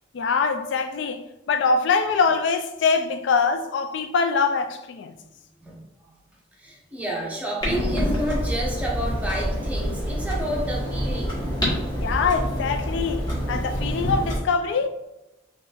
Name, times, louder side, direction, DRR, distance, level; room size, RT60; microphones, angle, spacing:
voice 1, 0.1-5.1 12.0-14.9, left 5 dB, 65° left, 0.3 m, -23 dB
voice 2, 6.6-11.3, equal, 10° right, 0.7 m, -30 dB
Clock, 7.6-14.4, equal, 20° left, 1.2 m, -27 dB
3.7 x 2.5 x 3.3 m
head